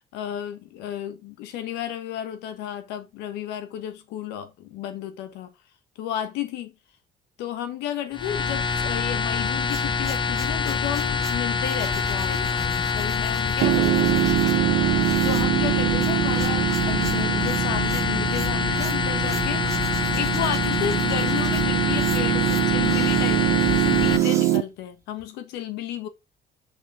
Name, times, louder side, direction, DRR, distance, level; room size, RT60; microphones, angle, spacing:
voice 1, 0.1-5.5 6.0-6.7 7.4-14.4 15.2-19.7 20.1-26.1, left 10 dB, 90° left, 1.3 m, -32 dB
sound 1, 8.1-24.2, left 5 dB, 30° left, 0.8 m, -25 dB
sound 2, 9.3-25.2, right 3 dB, 20° right, 1.8 m, -42 dB
Piano, 13.6-24.6, right 15 dB, 75° right, 0.6 m, -24 dB
6.4 x 5.4 x 3.8 m
cardioid pair, 110°, 17 cm